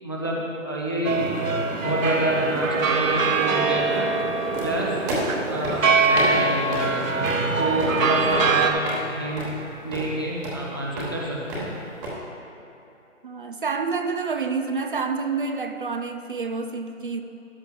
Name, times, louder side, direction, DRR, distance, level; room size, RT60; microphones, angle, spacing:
voice 1, 0.0-1.4 1.8-4.1 4.6-5.0 5.5-7.1 7.6-9.5 9.8-11.7, right 1 dB, 20° left, -3 dB, 0.4 m, -28 dB
sound 1, 1.0-8.7, right 4 dB, 80° right, 1.1 m, -23 dB
sound 2, 4.5-12.1, equal, 15° right, 1.1 m, -33 dB
voice 2, 13.2-17.2, right 4 dB, 45° right, 6 dB, 0.5 m, -28 dB
13.0 x 10.5 x 2.3 m, 2.9 s
hypercardioid pair, 155°, 39 cm